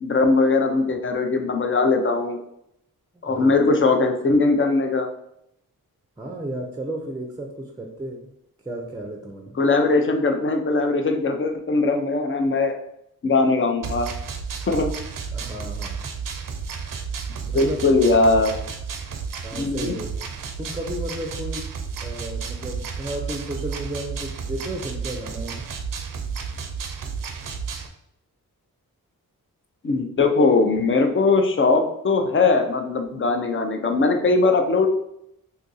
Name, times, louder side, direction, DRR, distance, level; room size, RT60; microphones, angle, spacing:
voice 1, 0.0-2.4 3.2-5.1 9.6-12.8 13.2-14.1 14.7-14.9 17.5-18.6 19.5-19.9 29.8-34.9, left 3 dB, 35° left, 6 dB, 0.6 m, -20 dB
voice 2, 3.2-3.5 6.2-8.3 8.6-9.6 15.3-16.1 17.4-17.8 19.4-21.6 22.0-25.6, right 1 dB, 10° right, 2 dB, 0.6 m, -33 dB
sound 1, 13.8-27.9, right 5 dB, 60° right, 0.6 m, -32 dB
2.8 x 2.5 x 4.0 m, 0.77 s
cardioid pair, 50°, 37 cm